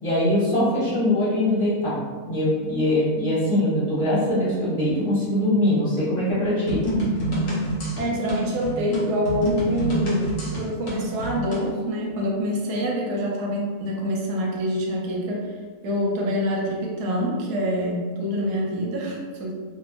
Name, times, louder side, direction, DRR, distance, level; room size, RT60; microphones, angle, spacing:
voice 1, 0.0-2.0 2.3-6.8, left 1 dB, 20° left, -12 dB, 1.1 m, -22 dB
voice 2, 0.5-0.9 8.0-15.5 15.8-19.5, equal, 85° right, -2 dB, 1.2 m, -26 dB
sound 1, 6.7-11.7, right 1 dB, 55° left, 1.0 m, -27 dB
2.8 x 2.5 x 2.4 m, 1.5 s
omnidirectional pair, 1.7 m